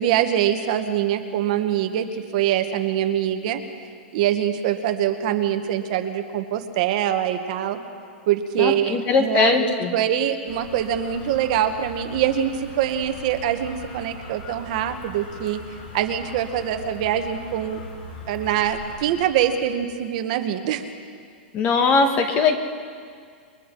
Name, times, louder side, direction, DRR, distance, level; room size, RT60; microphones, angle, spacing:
voice 1, 0.0-3.6 4.1-7.8 8.3-15.6 15.9-17.8 18.3-20.8, right 10 dB, 40° right, 7 dB, 1.2 m, -24 dB
voice 2, 8.6-9.9 21.5-22.6, left 4 dB, 20° left, 6 dB, 1.4 m, -20 dB
sound 1, 10.5-19.8, left 1 dB, 60° left, 7.2 m, -40 dB
29.0 x 22.5 x 4.6 m, 2.1 s
supercardioid pair, 175°, 6 cm